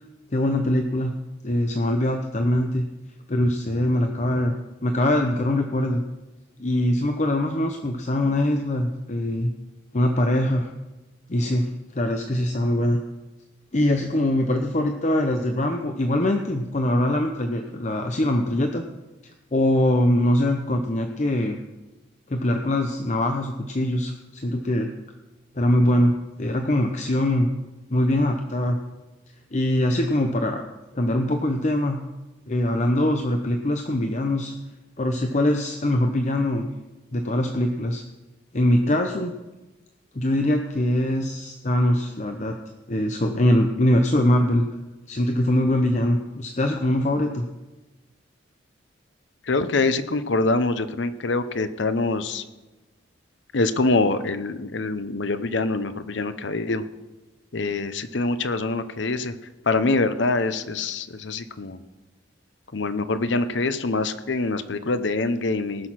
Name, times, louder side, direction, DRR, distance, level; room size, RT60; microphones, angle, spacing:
voice 1, 0.3-1.1 1.4-2.8 3.3-4.5 4.8-6.0 6.6-9.5 9.9-10.7 11.3-11.7 11.9-13.0 13.7-18.8 19.5-21.6 22.3-24.9 25.6-27.5 27.9-28.8 29.5-30.7 30.9-32.0 32.5-34.5 35.0-36.7 37.1-38.0 38.5-39.3 40.1-42.6 42.9-44.7 45.1-47.5, left 1 dB, 40° left, 4 dB, 0.8 m, -22 dB
voice 2, 49.4-52.4 53.5-56.8 57.5-59.4 59.7-61.8 62.7-65.9, left 3 dB, 75° left, 11 dB, 0.8 m, -24 dB
19.0 x 6.4 x 5.8 m, 1.1 s
head